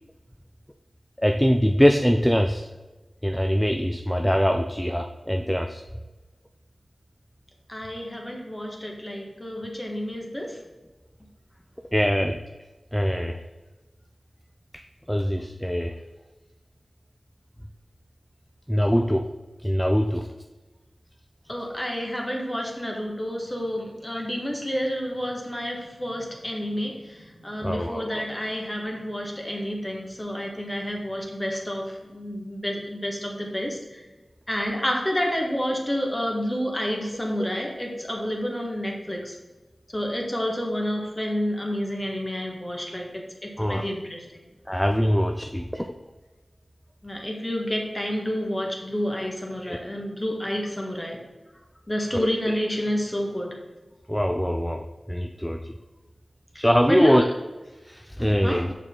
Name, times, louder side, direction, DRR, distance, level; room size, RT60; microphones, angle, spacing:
voice 1, 1.2-2.7 3.2-5.8 11.9-12.4 12.9-13.4 14.7-16.0 18.7-19.3 19.6-20.3 27.6-28.2 43.6-43.9 44.7-45.9 49.6-49.8 52.1-52.3 54.1-55.6 56.5-57.2 57.8-58.7, equal, 5° left, 5 dB, 0.4 m, -23 dB
voice 2, 7.7-10.6 21.5-34.0 34.5-39.3 39.9-44.2 47.0-51.2 51.9-53.6 56.5-57.3 58.4-58.7, equal, 20° left, 0 dB, 1.6 m, -29 dB
6.3 x 4.6 x 3.8 m, 1.2 s
cardioid pair, 40°, 0 cm